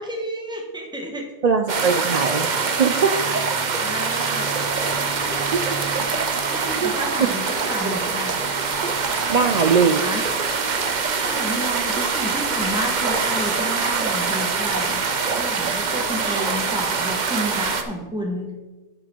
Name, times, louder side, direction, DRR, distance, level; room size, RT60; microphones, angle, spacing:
voice 1, 0.0-1.3 3.0-3.5 3.8-4.5 4.9-5.5 5.9-8.3 9.2-9.6 10.0-10.2 11.1-15.0 15.4-18.5, equal, 5° right, 1 dB, 1.3 m, -31 dB
voice 2, 1.4-3.3 5.5-5.6 6.8-6.9 9.3-10.0, right 5 dB, 65° right, 6 dB, 0.4 m, -20 dB
sound 1, 1.7-17.8, right 5 dB, 45° right, 0.8 m, -24 dB
sound 2, 4.4-17.9, left 1 dB, 65° left, 3.2 m, -42 dB
12.0 x 5.3 x 4.4 m, 1.2 s
omnidirectional pair, 1.3 m